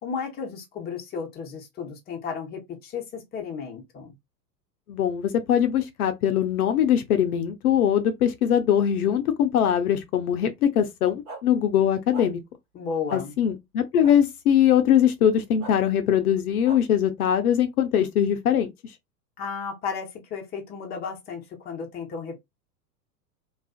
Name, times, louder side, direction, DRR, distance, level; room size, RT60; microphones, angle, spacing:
voice 1, 0.0-4.1 12.7-13.3 19.4-22.4, left 6 dB, 20° left, 0.7 m, -34 dB
voice 2, 4.9-12.4 13.1-18.7, left 9 dB, 65° left, 0.6 m, -22 dB
sound 1, 11.3-11.4 12.1-12.3 13.1-13.2 14.0-14.2 15.6-15.7 16.6-16.8, right 2 dB, 40° right, 1.2 m, -38 dB
2.4 x 2.4 x 2.4 m
hypercardioid pair, 100°, 49 cm